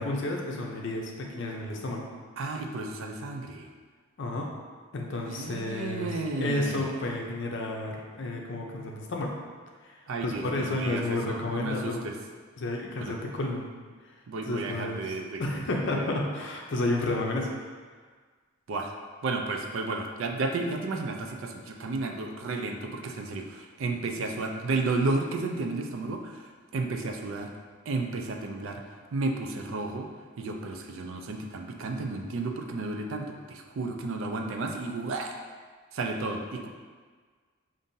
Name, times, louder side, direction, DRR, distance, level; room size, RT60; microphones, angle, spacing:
voice 1, 0.0-2.1 4.2-4.5 4.9-6.1 6.4-9.3 9.8-12.0 12.6-13.7 14.5-15.1 15.4-17.5, left 2 dB, 55° left, 0 dB, 0.5 m, -31 dB
voice 2, 2.4-3.7 5.3-6.9 10.1-12.1 13.0-13.2 14.3-15.6 16.0-16.1 18.7-18.9 19.2-26.5 26.7-27.5 27.9-28.8 29.1-30.1 30.4-35.4 35.9-36.7, right 3 dB, 65° right, 3 dB, 0.4 m, -32 dB
5.3 x 2.5 x 2.6 m, 1.5 s
head